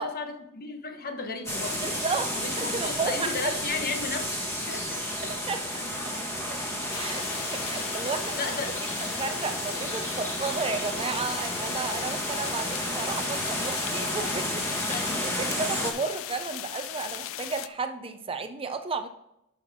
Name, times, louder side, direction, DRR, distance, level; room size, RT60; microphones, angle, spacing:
voice 1, 0.0-2.0 2.4-4.3 4.7-5.3 5.8-6.0 8.4-8.7 14.9-15.2, left 4 dB, 45° left, 5 dB, 1.1 m, -35 dB
sound 1, 1.5-15.9, equal, 10° left, 1.8 m, -32 dB
voice 2, 1.8-3.6 5.5-5.6 6.5-6.6 6.9-7.2 7.5-8.4 9.2-19.1, right 4 dB, 25° right, 8 dB, 0.5 m, -33 dB
sound 2, 6.9-17.7, left 12 dB, 65° left, 0.5 m, -38 dB
11.5 x 5.8 x 3.6 m, 0.83 s
head